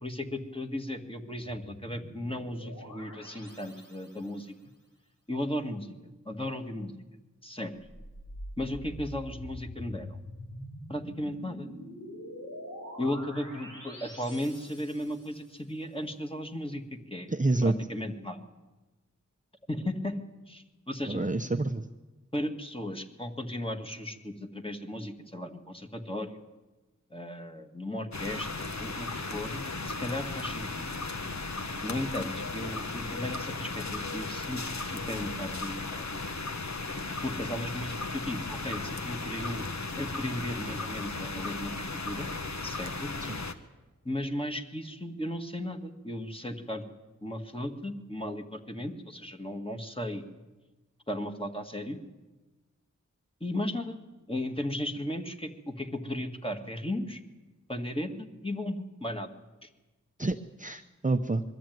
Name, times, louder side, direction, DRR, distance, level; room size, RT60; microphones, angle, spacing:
voice 1, 0.0-4.5 5.3-5.9 6.3-6.9 7.4-7.7 8.6-10.1 10.9-11.7 13.0-16.8 17.1-17.3 17.6-18.4 19.7-21.2 22.3-26.4 27.1-30.9 31.8-36.1 37.2-39.6 40.0-42.3 42.6-43.1 44.1-46.9 47.2-50.2 51.1-52.0 53.4-54.0 54.3-57.2 57.7-59.3 59.6-59.7, left 1 dB, 15° left, 4 dB, 1.9 m, -35 dB
sound 1, 1.4-4.5 7.8-15.5, equal, 85° left, 5.0 m, -45 dB
voice 2, 17.3-17.7 21.1-21.8 43.2-43.4 60.2-61.4, right 2 dB, 25° right, 7 dB, 0.7 m, -28 dB
sound 2, 28.1-43.5, left 3 dB, 60° left, 1.2 m, -36 dB
22.0 x 13.0 x 9.3 m, 1.2 s
wide cardioid pair, 55°, 31 cm